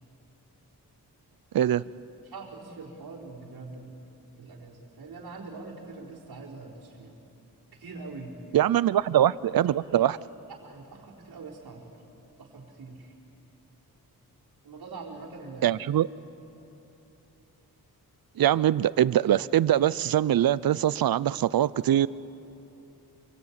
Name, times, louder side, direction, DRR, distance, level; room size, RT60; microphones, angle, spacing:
voice 1, 2.2-4.0 4.4-7.1 7.8-8.3 8.6-8.7 9.9-10.0 10.5-11.9 12.4-13.1 14.6-15.8, right 3 dB, 90° right, -5 dB, 4.2 m, -43 dB
voice 2, 8.5-10.2 15.6-16.1 18.4-22.1, right 11 dB, 70° right, 19 dB, 0.6 m, -23 dB
27.5 x 23.5 x 8.8 m, 2.9 s
wide cardioid pair, 135°, 37 cm